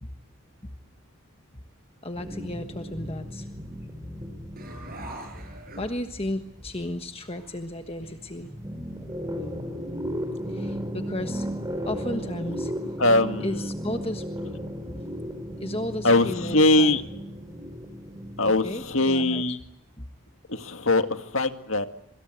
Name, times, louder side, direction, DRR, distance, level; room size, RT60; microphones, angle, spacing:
voice 1, 2.0-3.5 4.0-4.1 5.0-5.1 5.4-8.5 10.5-11.5 11.8-12.7 13.4-14.3 14.9-15.0 15.6-17.0 18.4-19.4 20.0-20.1, left 1 dB, 25° left, 6 dB, 1.3 m, -34 dB
sound 1, 2.1-7.7 8.0-19.0, equal, 15° right, 4.2 m, -35 dB
sound 2, 4.6-6.4 6.9-7.0 7.3-8.5, right 1 dB, 40° right, 6.7 m, -43 dB
voice 2, 13.0-13.7 16.0-17.0 18.4-19.6 20.5-21.9, left 2 dB, 65° left, 7 dB, 2.1 m, -22 dB
26.5 x 25.5 x 8.1 m, 0.76 s
head